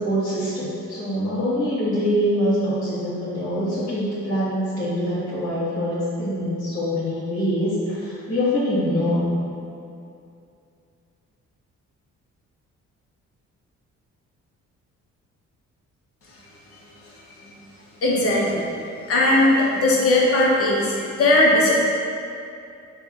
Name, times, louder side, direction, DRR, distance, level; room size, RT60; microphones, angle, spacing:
voice 1, 0.0-9.3, equal, 30° left, -13 dB, 1.3 m, -24 dB
voice 2, 18.0-18.6 19.1-21.7, left 1 dB, 50° left, -4 dB, 1.1 m, -18 dB
5.3 x 2.7 x 2.9 m, 2.6 s
cardioid pair, 90°, 30 cm